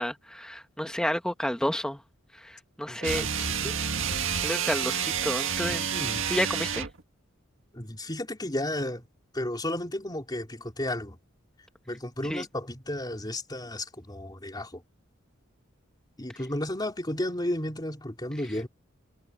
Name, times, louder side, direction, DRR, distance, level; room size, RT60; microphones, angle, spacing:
voice 1, 0.0-2.0 2.4-3.3 4.4-5.9 6.3-6.9 12.2-12.4, equal, 5° left, 1.0 m, -30 dB
voice 2, 2.9-3.8 5.9-6.3 7.7-9.0 9.3-11.2 11.9-14.8 16.2-18.7, left 1 dB, 20° left, 3.7 m, -33 dB
sound 1, 3.0-7.0, right 7 dB, 70° right, 1.9 m, -29 dB
head